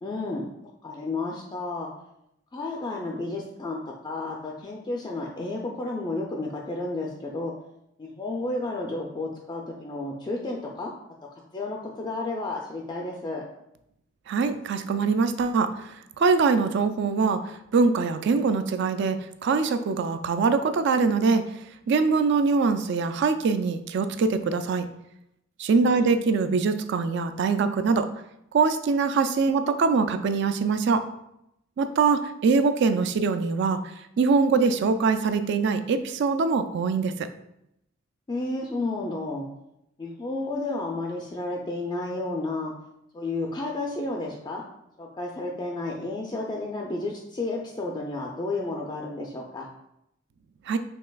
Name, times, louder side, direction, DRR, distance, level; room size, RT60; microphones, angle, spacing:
voice 1, 0.0-0.5 0.8-1.9 2.5-7.5 8.0-10.9 11.5-13.4 25.8-26.1 38.3-39.5 40.0-42.7 43.1-44.6 45.0-49.7, left 2 dB, 25° left, -1 dB, 0.4 m, -32 dB
voice 2, 14.3-15.9 16.2-17.4 17.7-21.5 21.9-24.9 25.6-28.1 28.5-31.0 31.8-33.8 34.2-37.1 50.7-50.8, right 4 dB, 60° right, 10 dB, 0.3 m, -23 dB
5.3 x 3.2 x 2.3 m, 0.81 s
head